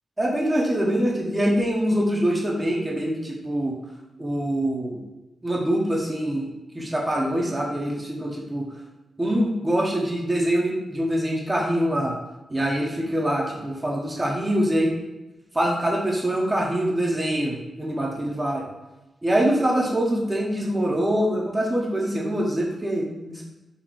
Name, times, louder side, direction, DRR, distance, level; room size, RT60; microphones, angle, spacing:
voice 1, 0.2-3.7 4.2-5.0 5.4-6.5 6.7-8.6 9.2-12.1 12.5-14.9 15.5-18.6 19.2-23.4, right 1 dB, 15° right, -3 dB, 0.8 m, -24 dB
4.1 x 2.7 x 4.6 m, 1.0 s
wide cardioid pair, 130°, 0 cm